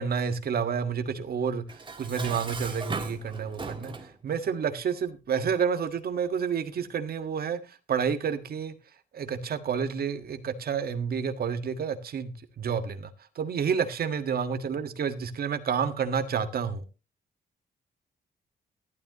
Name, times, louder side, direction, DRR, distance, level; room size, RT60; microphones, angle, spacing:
voice 1, 0.0-8.7 9.1-12.3 12.6-13.1 13.3-16.8, right 6 dB, 60° right, 1.7 m, -29 dB
Dishes pots and pans, 1.7-4.2, right 4 dB, 25° right, 1.7 m, -37 dB
14.0 x 12.5 x 3.0 m
cardioid pair, 110°, 18 cm